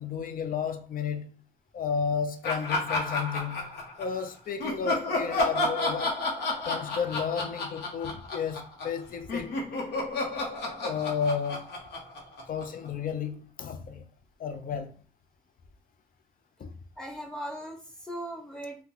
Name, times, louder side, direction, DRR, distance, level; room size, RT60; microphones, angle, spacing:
voice 1, 0.0-1.3 1.7-3.7 4.0-6.2 6.7-9.5 10.8-11.8 12.5-14.1 14.4-15.0 16.6-16.7, left 6 dB, 55° left, 0.5 m, -32 dB
Laughter, 2.4-4.2 4.6-9.0 9.3-12.9, left 2 dB, 85° left, 0.9 m, -31 dB
voice 2, 17.0-18.8, right 1 dB, 5° left, 1.2 m, -38 dB
2.7 x 2.2 x 3.8 m
supercardioid pair, 50°, 17 cm